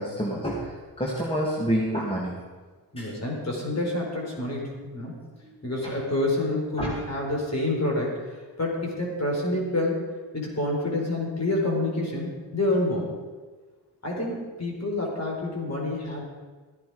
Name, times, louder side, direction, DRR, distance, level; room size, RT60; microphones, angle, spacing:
voice 1, 0.0-2.4 3.0-3.1 5.4-5.6 5.8-5.9 6.8-7.0, equal, 15° left, -3 dB, 2.6 m, -28 dB
voice 2, 2.9-5.2 5.6-10.1 10.3-13.2 14.0-16.2, left 2 dB, 40° left, -1 dB, 4.9 m, -28 dB
14.5 x 10.5 x 5.2 m, 1.4 s
cardioid pair, 60°, 42 cm